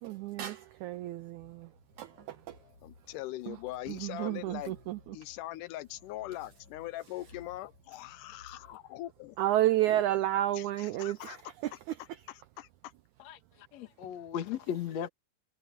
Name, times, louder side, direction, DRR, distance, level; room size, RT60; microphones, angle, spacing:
voice 1, 0.0-2.6 3.5-3.6 3.9-5.2 9.4-12.2, right 13 dB, 90° right, 1.7 m, -32 dB
sound 1, 1.4-8.8, left 3 dB, 35° left, 5.5 m, -59 dB
voice 2, 2.8-4.8 5.1-9.4 10.6-11.4 12.6-12.7, left 15 dB, 80° left, 1.9 m, -41 dB
voice 3, 13.7-15.1, left 9 dB, 55° left, 2.5 m, -36 dB
omnidirectional pair, 4.1 m